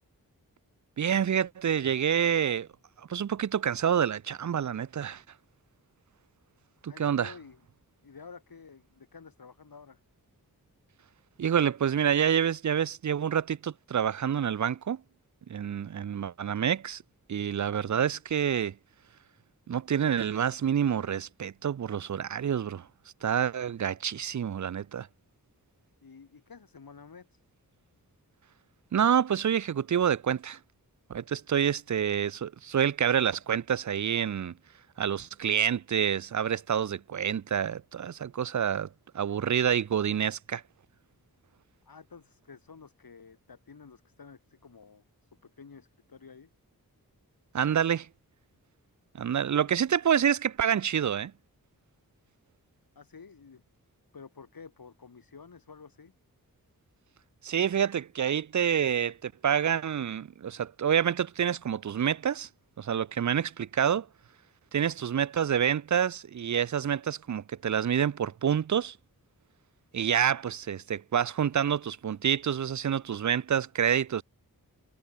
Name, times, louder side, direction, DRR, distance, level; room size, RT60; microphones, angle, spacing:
voice 1, 1.0-2.7 3.1-5.2 6.8-7.3 11.4-15.0 15.5-17.0 17.3-18.7 19.7-22.9 23.2-25.1 28.9-30.6 31.1-34.5 35.0-38.9 39.1-40.6 47.5-48.1 49.2-51.3 57.4-62.5 62.8-64.1 64.7-69.0 69.9-74.2, right 8 dB, 55° right, 0.6 m, -27 dB
voice 2, 6.9-7.6 8.0-10.0 26.0-27.4 31.5-31.6 41.9-46.5 49.5-49.7 52.9-53.6 54.1-56.1, left 5 dB, 70° left, 4.6 m, -51 dB
wide cardioid pair, 85°, 36 cm